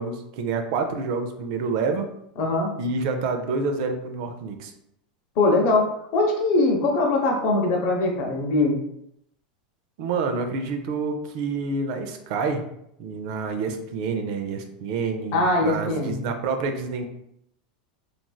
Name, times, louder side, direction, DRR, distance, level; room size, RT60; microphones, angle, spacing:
voice 1, 0.0-2.1 2.8-4.7 10.0-12.6 13.0-17.0, right 4 dB, 60° right, 5 dB, 0.4 m, -28 dB
voice 2, 2.4-2.7 5.4-8.8 15.3-16.2, left 2 dB, 50° left, 1 dB, 0.8 m, -22 dB
3.2 x 2.5 x 2.2 m, 0.75 s
supercardioid pair, 120°, 4 cm